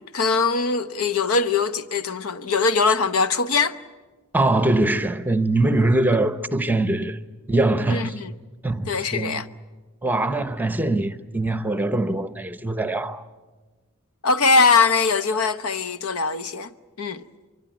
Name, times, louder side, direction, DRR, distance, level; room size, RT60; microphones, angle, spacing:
voice 1, 0.0-3.8 7.9-8.3 8.9-9.5 14.2-16.7 17.0-17.2, left 4 dB, 90° left, 0.9 m, -21 dB
voice 2, 4.3-7.2 7.5-8.2 8.6-9.5 10.0-13.2, right 2 dB, 10° right, 0.8 m, -22 dB
24.5 x 24.0 x 9.2 m
head